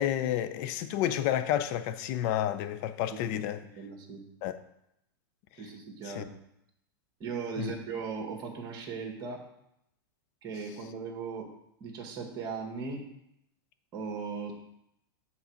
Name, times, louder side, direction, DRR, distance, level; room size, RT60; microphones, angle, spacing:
voice 1, 0.0-3.6 4.4-4.5 6.0-6.2 7.6-7.8, left 11 dB, 50° left, 0.6 m, -30 dB
voice 2, 3.8-4.2 5.6-6.4 7.2-9.4 10.4-11.5 11.8-13.0 13.9-14.5, right 5 dB, 35° right, 1.9 m, -38 dB
7.2 x 4.0 x 6.3 m
hypercardioid pair, 120°, 12 cm